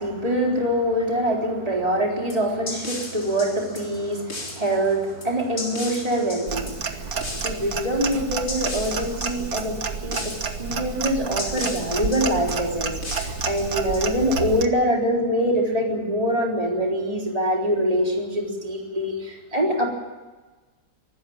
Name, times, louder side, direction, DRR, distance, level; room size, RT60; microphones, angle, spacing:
voice 1, 0.0-7.1 7.4-19.9, equal, 20° right, 0 dB, 4.0 m, -24 dB
sound 1, 2.3-14.5, left 2 dB, 45° left, 4.4 m, -37 dB
Clock, 6.5-14.7, right 5 dB, 55° right, 1.8 m, -30 dB
24.5 x 13.5 x 8.8 m, 1.3 s
omnidirectional pair, 1.9 m